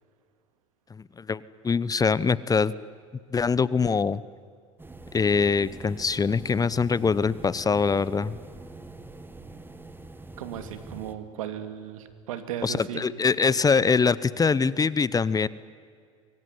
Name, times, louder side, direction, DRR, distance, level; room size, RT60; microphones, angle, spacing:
voice 1, 0.9-2.7 3.3-4.2 5.1-8.3 12.6-15.5, left 5 dB, 20° left, 19 dB, 0.9 m, -23 dB
sound 1, 4.8-11.1, right 2 dB, 10° right, 2.0 m, -44 dB
voice 2, 10.4-13.1, right 10 dB, 80° right, 10 dB, 2.6 m, -36 dB
24.5 x 23.0 x 9.8 m, 2.1 s
hypercardioid pair, 80°, 17 cm